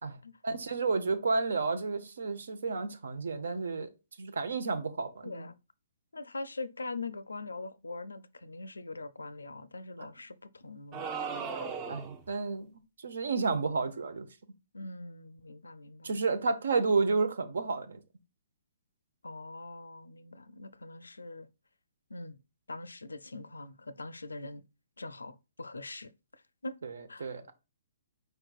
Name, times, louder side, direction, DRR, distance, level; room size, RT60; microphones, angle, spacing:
voice 1, 0.4-3.9 4.2-5.5 10.0-10.1 11.9-12.7 13.0-14.3 16.0-18.0 26.8-26.9 27.2-27.5, right 4 dB, 70° right, 0.8 m, -31 dB
voice 2, 5.2-5.6 6.1-11.0 14.7-16.1 19.2-21.5 22.1-22.4 22.7-24.6 25.0-26.8 27.1-27.3, left 3 dB, 85° left, 0.4 m, -42 dB
sound 1, 10.9-12.3, right 5 dB, 30° right, 0.7 m, -37 dB
4.7 x 4.5 x 2.4 m
figure-of-eight pair, 130°, 0 cm